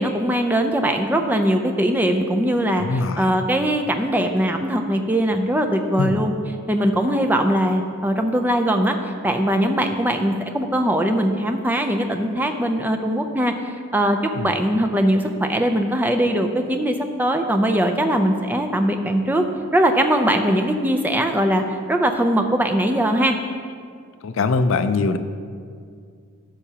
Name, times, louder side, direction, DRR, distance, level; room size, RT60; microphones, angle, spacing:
voice 1, 0.0-6.3 6.7-13.5 13.9-14.2 14.4-19.5 19.7-23.4, right 1 dB, 10° right, 4 dB, 0.4 m, -21 dB
voice 2, 2.8-3.4 6.0-6.3 14.4-14.5 24.2-25.2, left 3 dB, 60° left, 10 dB, 0.4 m, -22 dB
13.0 x 6.9 x 2.8 m, 2.2 s
head